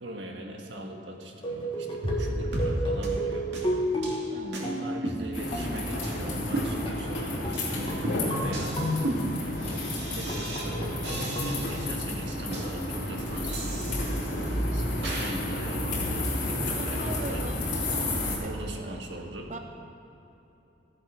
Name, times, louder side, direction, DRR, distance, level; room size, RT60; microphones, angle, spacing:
voice 1, 0.0-3.5 4.6-8.8 9.5-11.1 11.4-13.7 14.7-17.5 18.4-19.5, right 1 dB, 90° right, 1 dB, 1.6 m, -41 dB
sound 1, 1.4-6.0 6.9-7.2 7.4-9.6 10.0-11.9, equal, 30° left, 1.5 m, -32 dB
sound 2, 2.0-2.2 2.5-2.7 3.0-3.1 3.5-3.6 4.0-4.2 4.5-4.6 5.0-5.7 6.0-6.1 6.5-7.1 7.5-7.7 8.0-10.7 11.0-11.9 12.5-12.6 13.5-14.5 15.0-15.3, right 1 dB, 70° right, 2.6 m, -34 dB
voice 2, 4.3-4.7 16.6-17.7 18.4-19.0 19.5-19.6, right 2 dB, 40° right, 4 dB, 0.6 m, -40 dB
sound 3, 5.3-18.4, left 1 dB, 75° left, 3.1 m, -31 dB
15.0 x 7.9 x 6.1 m, 3.0 s
head